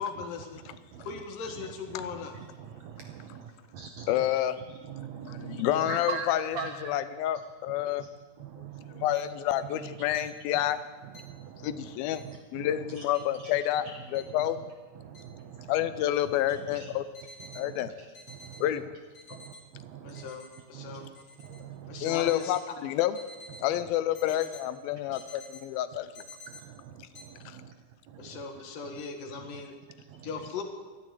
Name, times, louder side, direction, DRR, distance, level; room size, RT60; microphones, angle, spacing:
voice 1, 0.0-0.6 1.1-2.3 20.0-21.1 21.9-22.5 24.2-24.4 28.2-29.8 30.2-30.6, left 5 dB, 70° left, 4 dB, 3.0 m, -38 dB
voice 2, 0.6-1.2 1.5-1.7 2.0-4.4 4.7-7.0 7.7-8.1 8.4-9.1 9.6-10.3 10.5-10.7 11.0-13.5 13.8-14.4 14.9-16.0 16.3-17.0 17.4-17.9 18.3-18.7 19.3-20.3 20.7-21.1 21.4-22.2 23.6-23.9 25.1-25.2 26.5-27.7 28.1-28.5 28.9-29.0 29.3-29.5 30.0-30.3, right 7 dB, 80° right, 5 dB, 1.5 m, -43 dB
voice 3, 4.1-4.6 5.1-8.1 8.6-8.7 9.0-10.8 11.6-12.2 12.5-13.9 14.1-14.6 15.7-17.0 17.6-17.9 18.6-18.8 22.0-23.2 23.6-26.2 27.5-27.6, left 12 dB, 90° left, 13 dB, 2.5 m, -29 dB
sound 1, 9.1-9.2 10.1-10.2 11.1-11.2 12.1-12.2 13.1-13.2 14.1-14.2 15.1-15.2 16.1-16.2 17.1-17.6 18.1-18.6 19.1-19.6 20.1-20.6 21.1-21.6 22.1-22.6 23.1-23.6 24.1-24.6 25.2-25.6 26.1-26.6 27.2-27.3, left 2 dB, 30° left, 2.8 m, -48 dB
13.0 x 11.0 x 9.2 m, 1.4 s
omnidirectional pair, 4.2 m